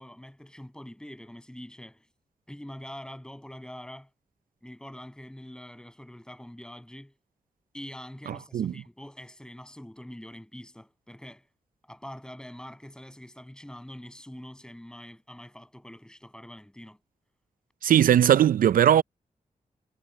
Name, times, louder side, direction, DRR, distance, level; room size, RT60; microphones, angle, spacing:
voice 1, 0.0-2.1 2.5-4.1 4.6-7.1 7.7-11.5 11.8-17.0, left 1 dB, 5° left, 6.6 m, -44 dB
voice 2, 8.3-8.7 17.8-19.0, right 10 dB, 85° right, 0.4 m, -20 dB
wide cardioid pair, 125°, 14 cm